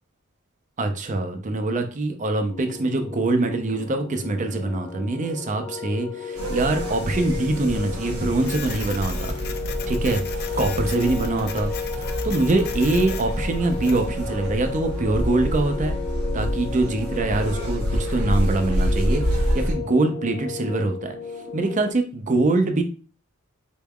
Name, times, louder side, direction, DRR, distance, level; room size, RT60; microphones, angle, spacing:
voice 1, 0.8-9.4 9.9-10.2 10.6-16.0 16.3-21.1 21.5-22.8, right 2 dB, 35° right, 6 dB, 0.6 m, -24 dB
sound 1, 2.5-21.9, left 5 dB, 70° left, 1.0 m, -34 dB
sound 2, 6.4-19.8, equal, 85° right, 1.0 m, -27 dB
Printer, 8.4-14.1, left 7 dB, 50° left, 0.4 m, -38 dB
4.0 x 3.6 x 2.3 m, 0.37 s
head